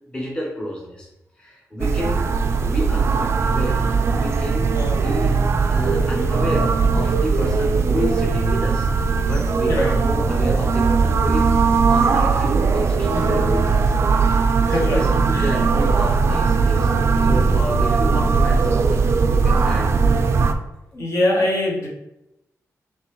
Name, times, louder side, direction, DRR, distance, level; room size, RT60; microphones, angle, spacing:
voice 1, 0.1-1.1 1.4-2.3 2.6-5.4 5.7-11.5 11.9-13.9 14.8-16.9 17.2-19.9, equal, 15° left, -3 dB, 0.9 m, -30 dB
sound 1, 1.8-20.5, right 4 dB, 50° right, 0.3 m, -19 dB
voice 2, 14.6-15.6 20.9-21.9, left 1 dB, 55° left, -3 dB, 1.2 m, -23 dB
5.2 x 3.2 x 3.1 m, 0.89 s
wide cardioid pair, 155°, 6 cm